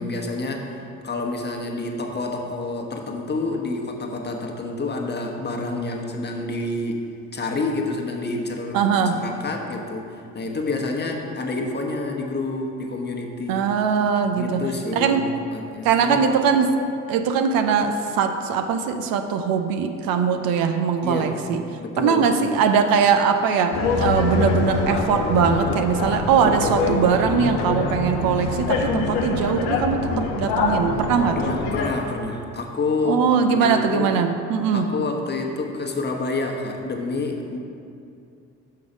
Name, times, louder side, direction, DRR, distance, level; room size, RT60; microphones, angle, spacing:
voice 1, 0.0-7.1 7.3-13.7 14.4-16.2 21.0-21.4 21.8-22.5 31.1-34.2 34.7-37.6, left 3 dB, 30° left, 1 dB, 1.1 m, -28 dB
voice 2, 8.7-9.2 13.5-15.2 15.8-16.8 17.1-21.6 22.0-31.5 33.1-34.9, right 6 dB, 70° right, 7 dB, 0.6 m, -21 dB
sound 1, 23.7-31.9, left 4 dB, 80° left, 0.7 m, -24 dB
6.1 x 5.7 x 5.0 m, 2.5 s
hypercardioid pair, 50°, 37 cm